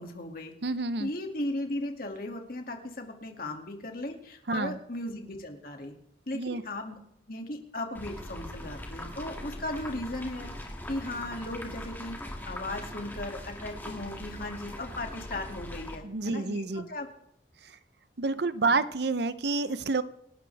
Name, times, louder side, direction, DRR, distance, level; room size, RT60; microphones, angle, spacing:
voice 1, 0.0-0.5 1.0-5.9 6.3-6.9 7.3-12.2 12.5-17.1 18.6-18.8, left 1 dB, 50° left, 3 dB, 2.5 m, -37 dB
voice 2, 0.6-1.1 4.5-4.8 6.3-6.6 16.0-16.9 17.6-17.8 18.2-20.0, right 3 dB, 60° right, 14 dB, 0.8 m, -29 dB
sound 1, 7.9-16.0, left 1 dB, 10° left, 2.2 m, -41 dB
27.5 x 12.5 x 3.5 m, 0.74 s
head